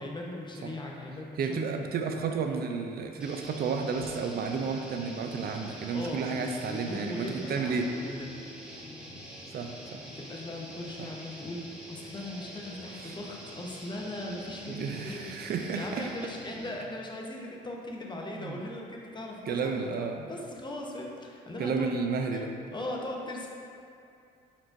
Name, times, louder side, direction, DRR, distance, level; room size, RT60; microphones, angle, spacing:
voice 1, 0.0-1.7 5.9-8.3 10.0-15.3 15.7-21.9 22.3-22.4 22.7-23.5, left 1 dB, 20° left, -1 dB, 0.8 m, -39 dB
voice 2, 1.4-7.9 9.5-10.0 11.0-11.1 13.0-13.1 14.7-16.1 18.3-18.6 19.5-20.3 21.6-22.5, right 5 dB, 50° right, 4 dB, 0.5 m, -32 dB
sound 1, 3.2-16.9, equal, 5° right, 1.1 m, -46 dB
4.4 x 4.3 x 2.6 m, 2.5 s
supercardioid pair, 60°, 21 cm